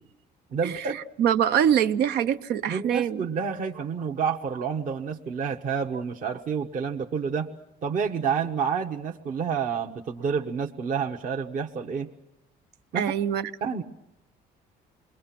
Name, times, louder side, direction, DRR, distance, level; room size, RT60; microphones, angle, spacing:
voice 1, 0.5-1.0 2.7-7.5 7.8-12.1 12.9-13.1 13.6-13.8, right 6 dB, 50° right, 1.2 m, -29 dB
voice 2, 1.2-3.2 12.9-13.5, right 9 dB, 75° right, 0.9 m, -24 dB
27.5 x 21.5 x 6.0 m
cardioid pair, 110°, 17 cm